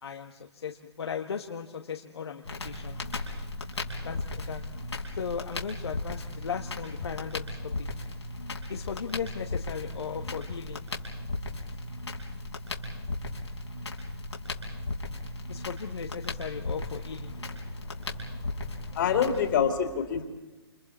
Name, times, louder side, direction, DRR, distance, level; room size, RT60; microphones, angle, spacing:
voice 1, 0.0-3.1 4.0-4.6 5.1-7.9 8.7-10.8 15.5-17.3, left 7 dB, 65° left, 3 dB, 1.5 m, -37 dB
Crackle, 2.4-19.6, left 2 dB, 85° left, 5.0 m, -36 dB
voice 2, 18.9-20.3, left 7 dB, 45° left, 5 dB, 3.2 m, -25 dB
29.5 x 27.5 x 4.4 m, 1.1 s
figure-of-eight pair, 130°, 14 cm